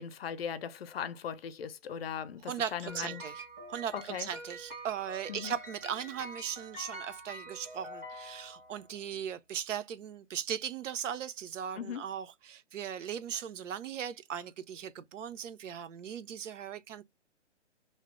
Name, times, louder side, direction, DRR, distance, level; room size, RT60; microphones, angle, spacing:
voice 1, 0.0-3.2 3.9-4.3 5.3-5.5 11.7-12.0, left 8 dB, 55° left, 0.5 m, -39 dB
voice 2, 2.4-17.0, right 8 dB, 85° right, 0.5 m, -38 dB
sound 1, 2.9-8.9, right 1 dB, 15° right, 0.3 m, -46 dB
2.7 x 2.0 x 2.9 m
hypercardioid pair, 155°, 36 cm